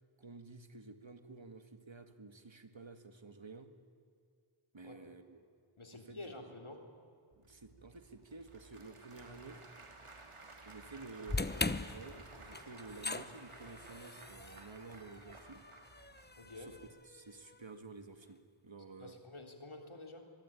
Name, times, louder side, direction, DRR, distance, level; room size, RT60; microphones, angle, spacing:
voice 1, 0.2-3.7 4.7-5.4 5.9-6.5 7.4-9.6 10.7-11.4 11.9-15.6 16.6-16.8 17.1-19.2, right 3 dB, 65° right, 8 dB, 2.1 m, -52 dB
voice 2, 4.8-5.1 5.8-6.9 16.4-16.8 19.0-20.3, left 2 dB, 75° left, 4 dB, 3.6 m, -49 dB
Applause / Crowd, 7.3-16.9, right 3 dB, 80° right, 2.8 m, -56 dB
sound 1, 11.3-17.5, left 2 dB, 20° left, 1.0 m, -41 dB
25.0 x 22.5 x 9.9 m, 2.3 s
wide cardioid pair, 55°, 50 cm